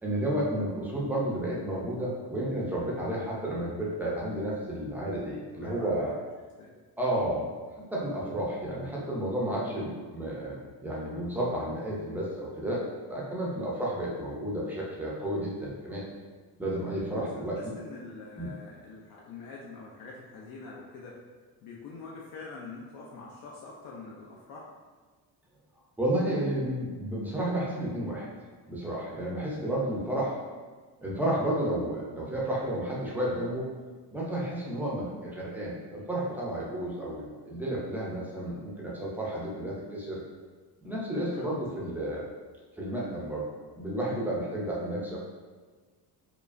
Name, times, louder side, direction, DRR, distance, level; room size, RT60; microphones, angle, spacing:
voice 1, 0.0-6.1 7.0-7.5 7.9-12.8 13.1-16.0 16.6-17.7 18.4-18.5 26.0-28.3 28.7-30.4 31.0-33.7 34.1-40.2 40.8-42.3 42.8-43.4 43.7-45.2, right 1 dB, 5° right, -5 dB, 0.5 m, -31 dB
voice 2, 5.5-6.2 6.6-6.7 17.1-17.3 17.6-21.2 21.6-24.7 41.3-41.6, left 4 dB, 60° left, -3 dB, 0.5 m, -45 dB
4.7 x 2.4 x 2.5 m, 1.4 s
cardioid pair, 175°, 41 cm